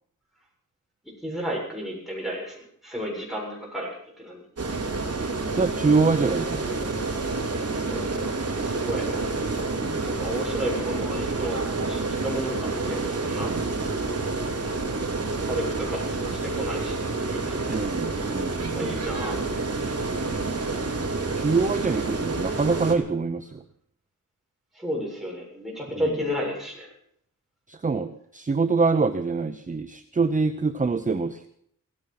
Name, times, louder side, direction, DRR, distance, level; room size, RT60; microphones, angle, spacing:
voice 1, 1.2-2.6 2.8-4.4 7.8-9.1 10.0-11.6 11.9-13.5 15.4-17.0 17.2-17.8 18.7-19.7 24.7-26.9, equal, ahead, -4 dB, 7.3 m, -32 dB
sound 1, 4.6-23.0, right 3 dB, 50° right, 2.9 m, -28 dB
voice 2, 5.5-6.9 9.8-10.0 13.4-13.6 17.7-19.2 21.4-23.6 27.7-31.5, right 4 dB, 25° right, 10 dB, 0.7 m, -25 dB
16.5 x 15.0 x 5.8 m, 0.67 s
wide cardioid pair, 150°, 32 cm